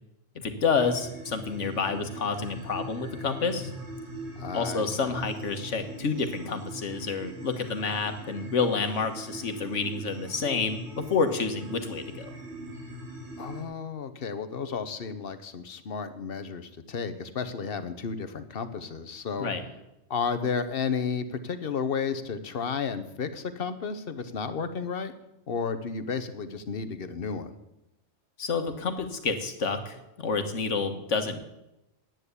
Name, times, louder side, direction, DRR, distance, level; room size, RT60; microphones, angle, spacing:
voice 1, 0.3-3.7 4.5-12.3 19.4-19.6 28.4-31.4, left 4 dB, 75° left, 8 dB, 1.7 m, -29 dB
sound 1, 0.7-13.6, right 1 dB, 65° right, 2.8 m, -41 dB
voice 2, 4.4-5.2 13.4-19.5 20.1-25.1 25.5-27.5, left 5 dB, 55° left, 11 dB, 1.1 m, -32 dB
10.5 x 9.1 x 8.2 m, 0.92 s
omnidirectional pair, 1.2 m